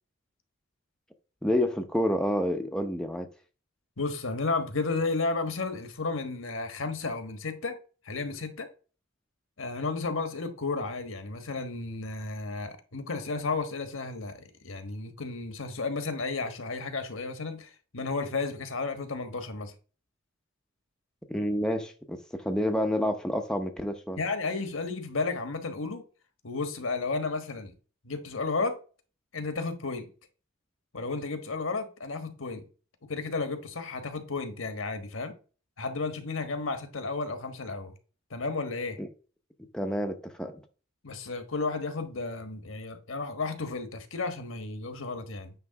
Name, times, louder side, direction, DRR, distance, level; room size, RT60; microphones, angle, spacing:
voice 1, 1.4-3.3 21.3-22.2 22.4-24.2 39.0-39.1 39.7-40.6, equal, 5° left, 0.7 m, -28 dB
voice 2, 4.0-7.8 8.0-8.7 9.6-19.7 24.2-26.0 26.4-27.8 28.0-28.8 29.3-30.1 30.9-32.7 33.0-35.4 35.8-37.9 38.3-39.0 41.0-45.5, left 3 dB, 75° left, 1.3 m, -33 dB
9.5 x 3.2 x 5.7 m
head